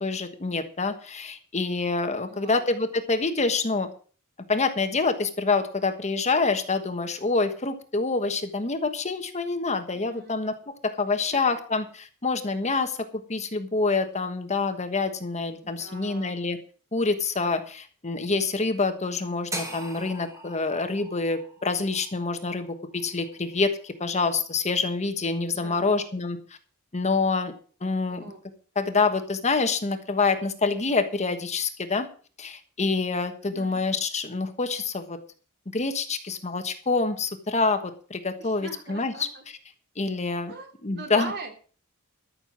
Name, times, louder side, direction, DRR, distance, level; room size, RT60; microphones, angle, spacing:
voice 1, 0.0-3.9 4.5-10.5 10.8-13.0 13.3-16.6 16.9-26.4 26.9-27.5 27.8-28.2 28.7-32.1 32.4-35.2 35.7-39.3 40.0-40.5 40.8-41.3, left 3 dB, 30° left, 8 dB, 1.3 m, -26 dB
voice 2, 2.3-2.7 9.9-10.4 11.3-11.6 15.6-16.4 25.5-26.1 28.1-28.4 33.4-33.8 38.4-39.4 40.5-41.5, right 3 dB, 50° right, 3 dB, 3.0 m, -41 dB
sound 1, 19.5-23.6, right 1 dB, 15° right, 2.0 m, -40 dB
13.5 x 6.8 x 7.5 m, 0.41 s
head